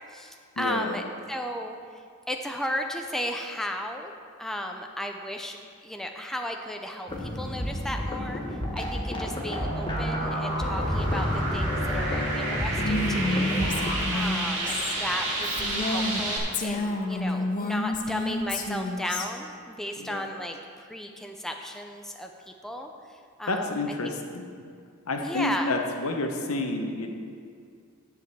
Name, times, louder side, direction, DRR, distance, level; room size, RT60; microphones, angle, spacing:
voice 1, 0.0-4.1 4.4-5.6 5.8-11.3 11.5-13.6 14.1-22.3 22.6-23.7 24.0-24.2 25.2-25.7, left 1 dB, ahead, 3 dB, 0.5 m, -35 dB
voice 2, 0.6-1.0 20.0-20.3 23.5-24.5 25.1-27.1, left 2 dB, 75° left, 3 dB, 1.0 m, -29 dB
sound 1, 7.1-14.0, equal, 20° left, 1.1 m, -30 dB
sound 2, 9.5-16.4, right 2 dB, 60° right, 2.1 m, -31 dB
Female speech woman speaking, 12.8-16.2 16.5-19.3, left 2 dB, 40° left, 0.8 m, -29 dB
9.6 x 5.1 x 7.3 m, 2.2 s
head